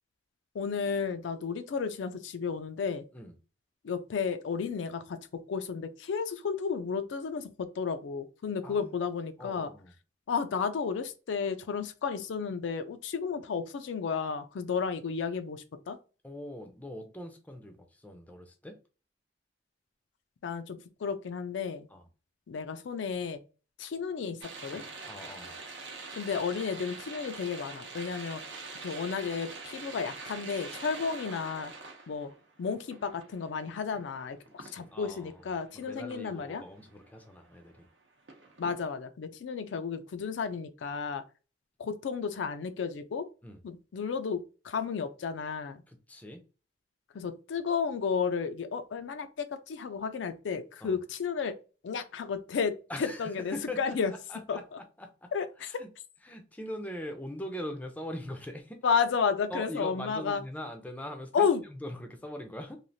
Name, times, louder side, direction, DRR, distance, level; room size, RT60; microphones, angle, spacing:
voice 1, 0.5-3.0 3.8-9.7 10.3-16.0 20.4-21.9 22.5-23.4 23.8-24.8 26.1-28.4 28.8-31.7 32.1-32.3 32.6-36.6 38.6-41.2 41.8-43.3 43.6-45.8 47.1-51.6 51.8-54.1 54.5-54.6 55.3-55.7 58.8-60.4 61.3-61.6, left 6 dB, 80° left, 0.4 m, -32 dB
voice 2, 8.6-8.9 9.4-9.9 16.2-18.8 21.9-22.0 25.1-25.6 34.6-35.4 35.7-37.9 43.4-43.6 45.9-46.4 50.8-50.9 52.9-54.6 55.0-55.3 55.6-55.9 56.2-58.8 59.5-62.8, left 1 dB, 10° left, 0.4 m, -42 dB
sound 1, 24.4-37.9 38.3-38.8, right 3 dB, 90° right, 0.7 m, -45 dB
3.1 x 2.3 x 2.6 m
head